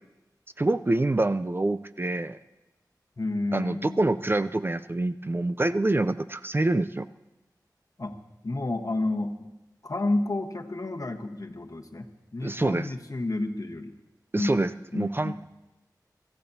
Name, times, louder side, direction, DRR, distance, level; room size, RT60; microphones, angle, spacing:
voice 1, 0.6-2.4 3.5-7.1 12.4-12.9 14.3-15.5, right 2 dB, 30° right, 13 dB, 0.4 m, -26 dB
voice 2, 3.2-4.0 8.0-8.2 8.4-9.5 9.8-13.9 14.3-14.6 14.9-15.5, left 2 dB, 55° left, 4 dB, 1.2 m, -30 dB
24.5 x 14.5 x 2.8 m, 1.0 s
wide cardioid pair, 70°, 7 cm